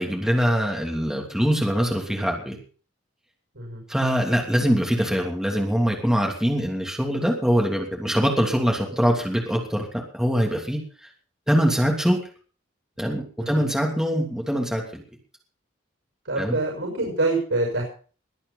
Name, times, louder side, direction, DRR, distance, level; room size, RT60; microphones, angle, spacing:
voice 1, 0.0-2.6 3.9-9.9 10.1-10.8 11.5-12.2 13.0-15.0 16.4-16.6, equal, 5° right, 0 dB, 3.0 m, -23 dB
voice 2, 16.3-17.8, right 2 dB, 90° right, 1 dB, 6.3 m, -25 dB
22.0 x 8.7 x 5.6 m, 0.41 s
head